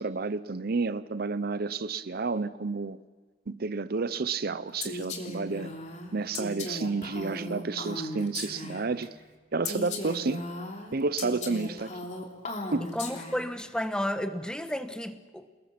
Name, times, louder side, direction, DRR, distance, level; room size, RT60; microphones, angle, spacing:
voice 1, 0.0-3.0 3.5-5.7 6.1-9.1 9.5-10.5 10.9-12.0 12.7-12.9, right 4 dB, 55° right, 0.7 m, -30 dB
Female speech woman speaking, 4.8-9.0 9.6-13.6, left 2 dB, 40° left, 3.1 m, -37 dB
voice 2, 12.8-15.4, left 1 dB, 5° left, 1.1 m, -32 dB
28.5 x 21.0 x 6.0 m
head